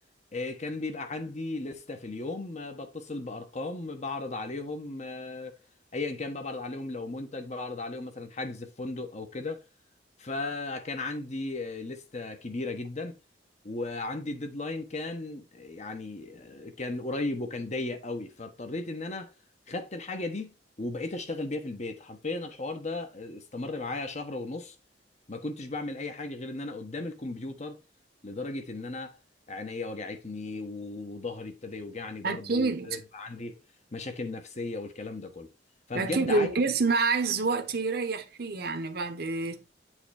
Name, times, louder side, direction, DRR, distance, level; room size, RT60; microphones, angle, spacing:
voice 1, 0.3-5.6 5.9-9.6 10.2-13.2 13.6-19.3 19.7-24.7 25.3-27.8 28.2-29.2 29.5-33.6 33.9-35.5 35.9-36.5, left 2 dB, 40° left, 1.2 m, -36 dB
voice 2, 32.2-33.0 35.9-39.6, right 3 dB, 60° right, 0.9 m, -27 dB
8.0 x 3.4 x 4.8 m
head